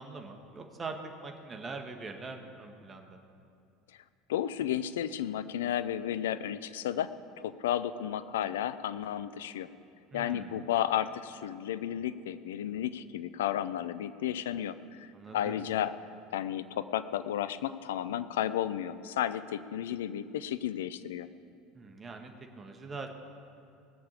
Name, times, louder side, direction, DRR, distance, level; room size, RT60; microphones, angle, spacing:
voice 1, 0.0-3.2 10.1-10.6 15.1-15.6 21.7-23.1, right 4 dB, 25° right, 4 dB, 1.6 m, -43 dB
voice 2, 4.3-9.7 10.1-16.0 16.3-21.3, left 11 dB, 70° left, 14 dB, 0.5 m, -33 dB
18.5 x 6.8 x 6.7 m, 2.5 s
figure-of-eight pair, 70°, 0 cm